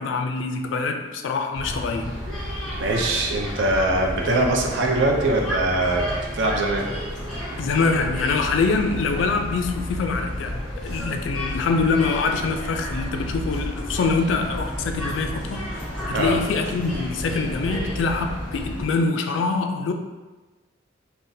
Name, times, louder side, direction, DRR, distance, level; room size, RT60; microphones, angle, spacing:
voice 1, 0.0-2.2 7.6-19.9, left 4 dB, 75° left, 5 dB, 0.3 m, -24 dB
sound 1, 1.5-18.8, equal, 5° left, 0.9 m, -31 dB
voice 2, 2.8-6.0 6.3-6.9 16.1-16.4, right 2 dB, 75° right, 0 dB, 0.5 m, -22 dB
3.9 x 2.1 x 2.6 m, 1.2 s
head